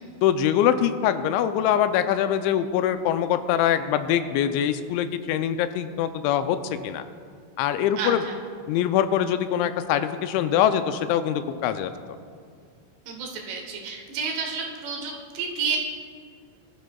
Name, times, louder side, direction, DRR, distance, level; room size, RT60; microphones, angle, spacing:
voice 1, 0.2-6.6 6.8-7.0 7.6-8.2 8.7-11.9, left 10 dB, 85° left, 10 dB, 2.8 m, -23 dB
voice 2, 8.0-8.4 13.1-15.8, right 5 dB, 70° right, 1 dB, 3.2 m, -30 dB
21.5 x 12.5 x 2.3 m, 2.1 s
omnidirectional pair, 5.3 m